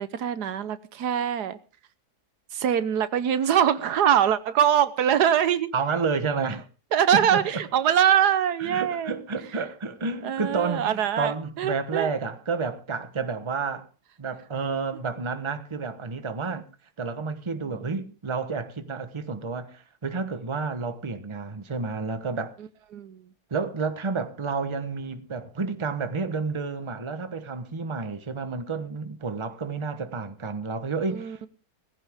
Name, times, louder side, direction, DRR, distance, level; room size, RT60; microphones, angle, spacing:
voice 1, 0.0-1.6 2.5-5.7 6.9-9.2 10.2-12.1 17.6-18.0 22.9-23.3 31.1-31.5, right 9 dB, 90° right, 1.5 m, -23 dB
voice 2, 5.7-6.7 7.1-7.4 8.6-13.9 14.2-16.6 17.0-22.5 23.5-31.5, right 4 dB, 20° right, 1.0 m, -30 dB
18.0 x 15.5 x 3.6 m
omnidirectional pair, 1.7 m